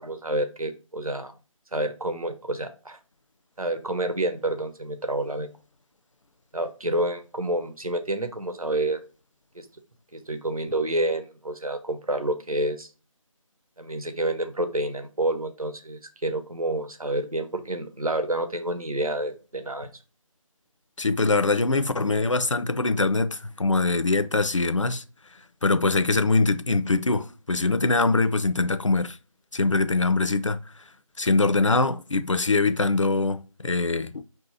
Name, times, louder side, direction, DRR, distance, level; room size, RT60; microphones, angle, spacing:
voice 1, 0.0-1.3 1.7-3.0 3.6-5.5 6.5-9.0 9.5-9.6 10.1-12.9 13.8-19.9, right 1 dB, 80° right, 0.9 m, -28 dB
voice 2, 21.0-25.0 25.6-29.2 29.5-30.6 31.2-34.2, left 3 dB, 60° left, 0.4 m, -23 dB
4.7 x 2.7 x 3.9 m
figure-of-eight pair, 170°, 18 cm